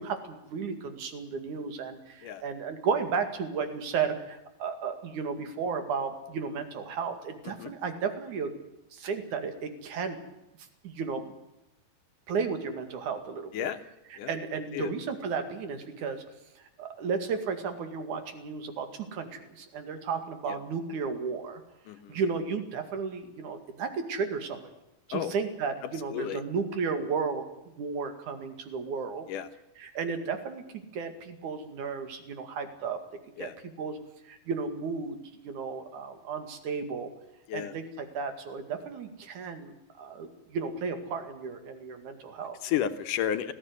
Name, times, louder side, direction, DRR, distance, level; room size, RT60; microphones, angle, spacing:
voice 1, 0.0-8.5 8.9-10.2 10.8-11.3 12.3-13.7 14.1-16.2 16.6-21.6 22.1-24.7 25.1-27.4 27.8-29.3 29.8-33.0 33.4-34.0 34.2-37.1 37.5-42.6, right 5 dB, 60° right, 8 dB, 3.5 m, -34 dB
voice 2, 21.9-22.2 25.1-25.3 26.1-26.4 29.3-29.5 33.4-33.5 37.5-37.7 42.6-43.5, left 10 dB, 70° left, 10 dB, 2.5 m, -32 dB
20.0 x 15.5 x 9.7 m, 0.91 s
omnidirectional pair, 4.2 m